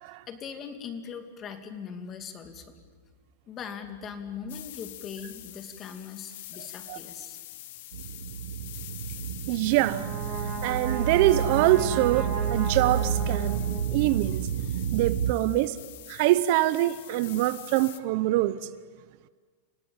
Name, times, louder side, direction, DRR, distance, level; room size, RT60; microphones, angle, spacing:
voice 1, 0.1-2.7 3.5-7.4, left 6 dB, 25° left, 2.6 m, -40 dB
sound 1, 4.5-18.0, left 15 dB, 60° left, 1.3 m, -45 dB
sound 2, 7.9-15.3, right 8 dB, 80° right, 1.3 m, -30 dB
voice 2, 9.5-10.1 10.6-13.7 13.9-14.4 14.9-15.8 16.1-18.6, right 16 dB, 50° right, 0.8 m, -24 dB
Brass instrument, 9.6-14.0, right 3 dB, 35° right, 6.5 m, -36 dB
29.5 x 17.5 x 9.0 m
supercardioid pair, 150°, 0 cm